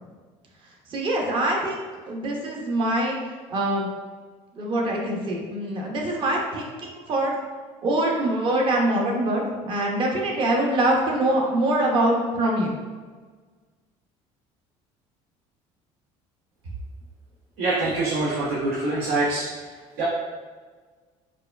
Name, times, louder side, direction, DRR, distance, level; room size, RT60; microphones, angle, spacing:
voice 1, 0.9-1.8 2.1-3.2 3.5-3.9 4.6-7.3 7.8-12.7, right 1 dB, 40° right, -1 dB, 0.7 m, -24 dB
voice 2, 17.6-19.5 20.0-20.1, right 2 dB, 75° right, -7 dB, 0.7 m, -24 dB
4.5 x 2.3 x 2.2 m, 1.4 s
cardioid pair, 135°, 13 cm